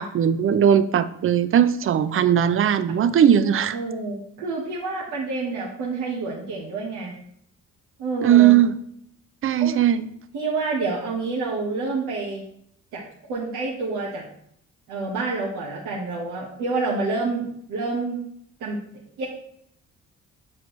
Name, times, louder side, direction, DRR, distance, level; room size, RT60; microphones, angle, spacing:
voice 1, 0.0-3.8 8.2-8.8 9.4-10.1, right 9 dB, 45° right, 13 dB, 0.5 m, -18 dB
voice 2, 3.7-7.2 8.0-8.6 9.6-9.8 10.3-12.4 12.9-13.0 13.3-14.2 14.9-18.2 18.6-18.8 19.2-19.3, right 3 dB, 90° right, -5 dB, 1.3 m, -28 dB
7.4 x 4.5 x 3.1 m, 0.70 s
cardioid pair, 90°, 30 cm